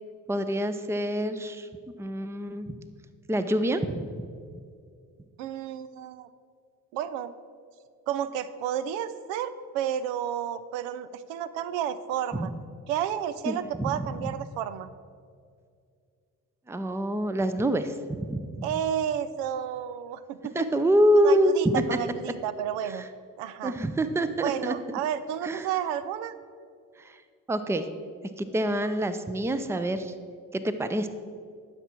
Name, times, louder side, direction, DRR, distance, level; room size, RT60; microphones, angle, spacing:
voice 1, 0.3-1.7 2.0-2.8 3.3-4.3 12.3-12.5 13.5-14.3 16.7-18.7 20.5-21.8 22.8-23.1 23.6-25.0 25.4-25.7 27.0-27.2 27.5-27.9 28.4-30.1 30.5-31.1, right 1 dB, 5° right, 11 dB, 0.6 m, -26 dB
voice 2, 5.4-6.3 6.9-7.3 8.1-12.5 12.9-14.9 18.6-20.7 21.2-23.1 23.4-23.7 24.4-26.3, right 10 dB, 80° right, 14 dB, 0.5 m, -31 dB
11.5 x 6.1 x 4.5 m, 2.2 s
hypercardioid pair, 50°, 41 cm